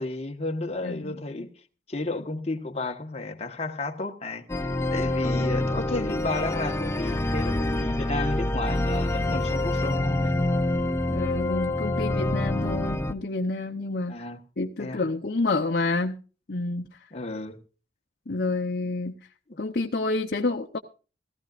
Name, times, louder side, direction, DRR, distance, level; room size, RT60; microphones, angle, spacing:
voice 1, 0.0-1.5 1.9-10.4 14.1-14.4 14.8-15.0 17.1-17.6 19.5-19.6, left 2 dB, 35° left, 1.3 m, -32 dB
voice 2, 0.8-1.5 11.1-14.2 14.6-16.2 16.5-16.9 18.3-19.2 19.6-20.8, left 3 dB, 55° left, 0.8 m, -29 dB
sound 1, 4.5-13.1, left 1 dB, 15° left, 0.6 m, -26 dB
17.5 x 14.5 x 2.5 m
head